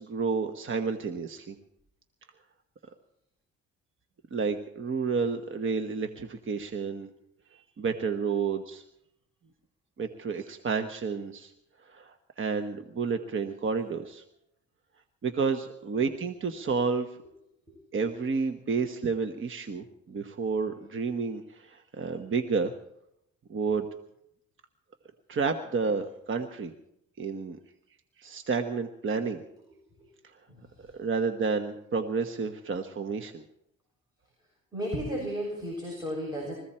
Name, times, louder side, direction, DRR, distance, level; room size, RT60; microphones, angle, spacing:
voice 1, 0.0-1.6 4.3-7.1 7.5-8.8 10.0-11.5 11.8-14.2 15.2-17.2 17.9-22.7 23.5-23.9 25.3-26.7 27.2-27.6 28.2-29.4 30.9-33.4, right 5 dB, 40° right, 7 dB, 1.2 m, -30 dB
voice 2, 30.5-30.9 34.7-36.5, equal, 15° right, -3 dB, 7.1 m, -35 dB
21.5 x 15.5 x 4.4 m, 0.79 s
cardioid pair, 90°, 30 cm